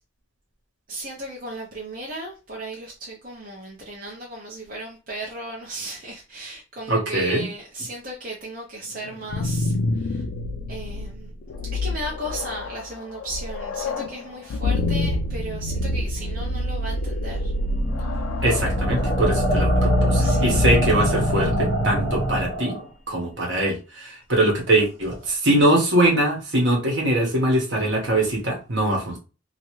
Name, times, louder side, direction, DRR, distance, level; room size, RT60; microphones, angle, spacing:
voice 1, 0.9-10.2 10.7-11.3 11.7-17.5 20.2-20.7 25.2-25.3, right 1 dB, 45° right, 0.6 m, -35 dB
voice 2, 6.9-7.5 18.4-22.8 23.1-29.2, right 1 dB, 60° right, 1.1 m, -22 dB
sound 1, 9.0-21.9, left 2 dB, 80° left, 0.4 m, -27 dB
sound 2, 17.2-22.8, equal, 30° left, 1.0 m, -24 dB
2.9 x 2.4 x 3.0 m
head